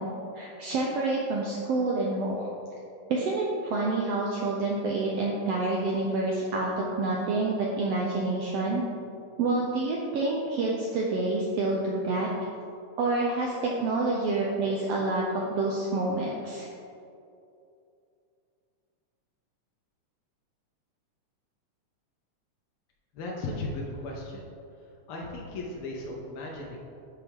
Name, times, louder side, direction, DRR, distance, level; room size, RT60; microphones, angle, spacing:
voice 1, 0.0-2.5 3.1-8.8 9.4-12.5 13.0-16.7, right 2 dB, 85° right, -2 dB, 1.4 m, -28 dB
voice 2, 23.1-24.5 25.1-26.8, left 2 dB, 90° left, -2 dB, 1.2 m, -36 dB
9.4 x 4.7 x 3.5 m, 2.6 s
omnidirectional pair, 3.5 m